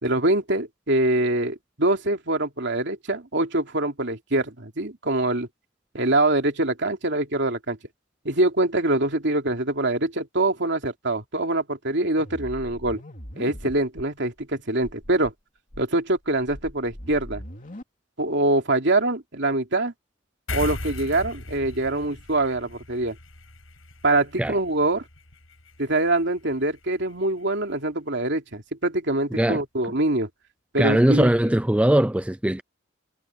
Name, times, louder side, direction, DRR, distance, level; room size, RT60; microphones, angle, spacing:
voice 1, 0.0-5.5 5.9-7.8 8.2-13.0 13.4-15.3 15.8-17.4 18.2-19.9 20.5-23.1 24.0-25.0 25.8-30.3 30.7-31.3, right 2 dB, 60° right, 3.1 m, -24 dB
sound 1, 12.2-14.1 14.4-14.5 14.8-15.3 15.7-17.8, equal, 40° left, 3.0 m, -40 dB
sound 2, 20.5-27.3, left 2 dB, 85° left, 6.1 m, -38 dB
voice 2, 30.8-32.6, right 1 dB, 5° right, 0.4 m, -20 dB
head